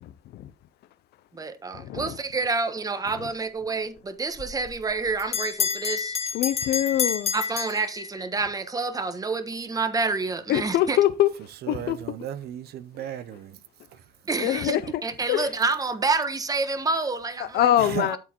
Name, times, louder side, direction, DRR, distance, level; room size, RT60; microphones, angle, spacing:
voice 1, 0.0-0.5 1.7-2.2 3.2-3.3 6.3-7.3 10.5-11.3 11.7-12.0 13.0-13.2 14.4-15.0 15.3-15.5 17.4-18.2, left 12 dB, 75° left, 0.7 m, -24 dB
voice 2, 1.3-6.1 7.3-11.0 14.3-17.6 18.1-18.2, right 3 dB, 20° right, 1.3 m, -28 dB
Bell, 4.4-8.5, left 6 dB, 40° left, 1.7 m, -29 dB
voice 3, 11.6-13.6 17.9-18.1, right 11 dB, 70° right, 0.8 m, -35 dB
12.5 x 4.6 x 4.5 m
cardioid pair, 110°, 17 cm